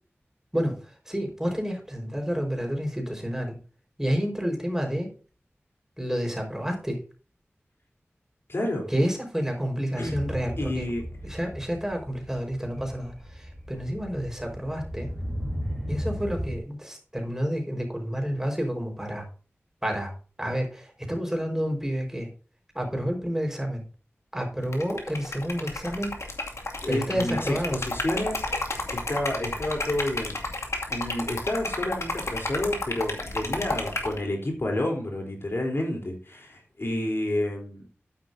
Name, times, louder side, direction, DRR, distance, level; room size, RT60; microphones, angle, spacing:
voice 1, 0.5-3.6 4.0-5.1 6.0-7.0 8.9-10.9 11.2-15.1 15.9-19.2 19.8-20.1 20.4-22.3 22.7-23.8 24.3-26.2 26.9-27.8, equal, 10° right, 2 dB, 4.7 m, -29 dB
voice 2, 8.5-8.9 10.0-10.2 10.6-11.0 26.8-30.4 30.9-37.9, left 1 dB, 55° left, 1 dB, 3.7 m, -30 dB
sound 1, 10.0-16.6, equal, 5° left, 3.7 m, -36 dB
Liquid, 24.6-34.2, left 2 dB, 85° left, 2.3 m, -32 dB
12.5 x 9.9 x 2.7 m, 0.38 s
wide cardioid pair, 55°, 5 cm